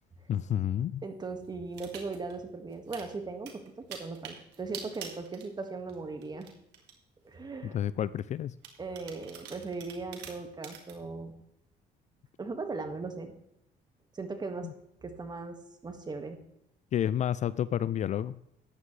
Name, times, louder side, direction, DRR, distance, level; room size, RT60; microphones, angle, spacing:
voice 1, 0.3-1.0 7.6-8.5 14.6-14.7 16.9-18.4, left 10 dB, 45° left, 17 dB, 0.4 m, -30 dB
voice 2, 1.0-6.5 7.2-7.8 8.8-11.3 12.4-13.3 14.1-14.7 15.0-16.4, right 3 dB, 25° right, 6 dB, 1.8 m, -38 dB
sound 1, 1.7-2.3 2.7-3.1 3.5-6.0 6.2-6.9 7.5-7.6 8.6-11.0, right 8 dB, 85° right, 2.1 m, -45 dB
13.5 x 9.8 x 3.3 m, 0.79 s
cardioid pair, 110°, 17 cm